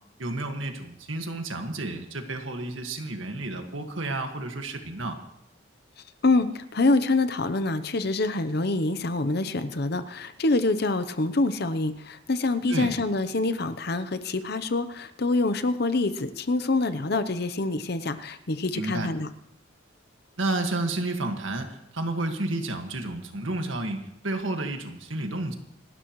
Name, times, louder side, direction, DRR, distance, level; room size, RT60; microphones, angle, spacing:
voice 1, 0.2-5.2 12.7-12.9 18.7-19.1 20.4-25.5, right 2 dB, 90° right, 5 dB, 1.8 m, -31 dB
voice 2, 6.2-19.3, left 2 dB, 55° left, 12 dB, 0.8 m, -26 dB
27.5 x 12.5 x 3.2 m, 0.77 s
head